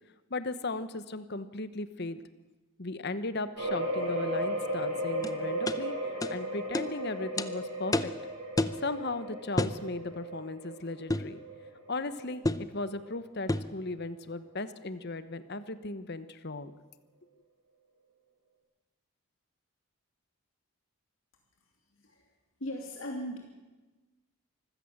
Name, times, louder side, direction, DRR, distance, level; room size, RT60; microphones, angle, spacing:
voice 1, 0.3-2.2 2.8-5.9 6.3-8.1 8.8-11.4 11.9-12.4 12.7-16.7, left 3 dB, 50° left, 13 dB, 1.1 m, -36 dB
sound 1, 3.5-13.0 13.5-13.6 14.0-14.1, right 1 dB, 80° right, 7.1 m, -35 dB
sound 2, 5.2-5.3 5.7-5.8 6.2-6.3 6.7-6.9 7.4-7.5 7.9-8.2 8.6-8.8 9.6-9.8 11.1-11.3 12.4-12.7 13.5-13.7, left 2 dB, 15° left, 0.6 m, -29 dB
voice 2, 22.6-23.4, equal, 65° left, 0 dB, 2.9 m, -38 dB
25.0 x 15.5 x 7.3 m, 1.2 s
head